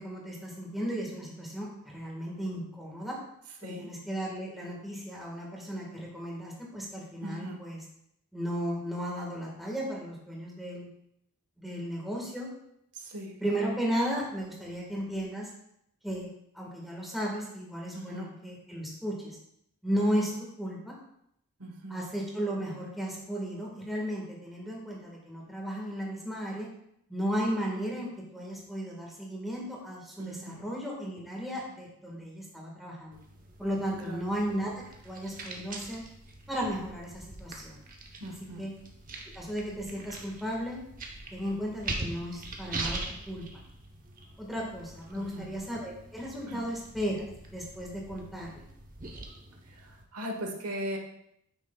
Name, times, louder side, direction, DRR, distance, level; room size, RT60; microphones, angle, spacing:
voice 1, 0.0-3.2 3.6-7.8 8.3-10.9 11.6-12.5 13.4-15.5 16.0-16.3 16.5-19.4 19.8-20.9 21.9-26.7 27.1-33.2 33.6-34.7 35.0-36.0 36.5-37.8 38.6-38.7 39.3-40.8 41.3-43.4 44.4-48.6, equal, ahead, -3 dB, 1.5 m, -35 dB
voice 2, 7.2-7.6 12.9-13.4 17.9-18.3 21.6-22.0 30.2-30.6 34.0-34.3 38.2-38.7 45.1-45.5 46.5-46.6 49.8-51.0, right 1 dB, 90° right, 2 dB, 1.2 m, -39 dB
sound 1, 33.1-50.0, right 2 dB, 35° right, 0.9 m, -43 dB
9.3 x 6.3 x 2.3 m, 0.75 s
head